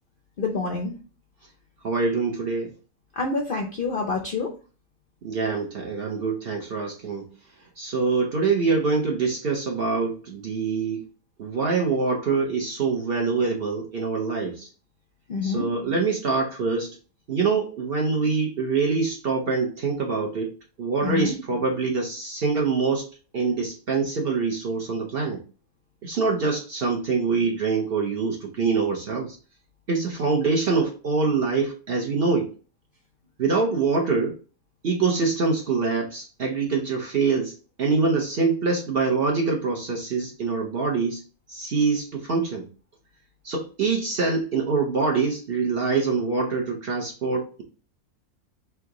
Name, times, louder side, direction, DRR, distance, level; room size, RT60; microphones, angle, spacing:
voice 1, 0.4-1.0 3.2-4.6 15.3-15.7 21.0-21.4, left 4 dB, 60° left, 2 dB, 0.5 m, -27 dB
voice 2, 1.8-2.7 5.2-7.3 7.8-11.0 11.4-14.7 15.4-17.0 17.3-25.4 26.0-29.4 29.9-32.5 33.4-34.4 34.8-41.2 41.5-42.7 43.4-47.6, right 4 dB, 50° right, 0 dB, 0.7 m, -25 dB
3.4 x 3.0 x 3.6 m, 0.36 s
omnidirectional pair, 1.6 m